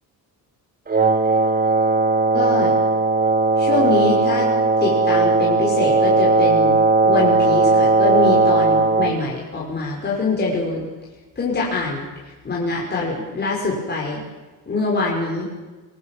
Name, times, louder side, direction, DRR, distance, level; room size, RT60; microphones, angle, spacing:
Wind instrument woodwind instrument, 0.9-9.2, right 3 dB, 25° right, 1.9 m, -17 dB
voice 1, 2.3-2.7 3.6-4.5 4.8-6.8 7.1-10.8 11.4-12.1 12.4-14.2 14.7-15.5, left 3 dB, 30° left, -4 dB, 5.6 m, -24 dB
26.5 x 21.0 x 7.5 m, 1.2 s
cardioid pair, 165°, 36 cm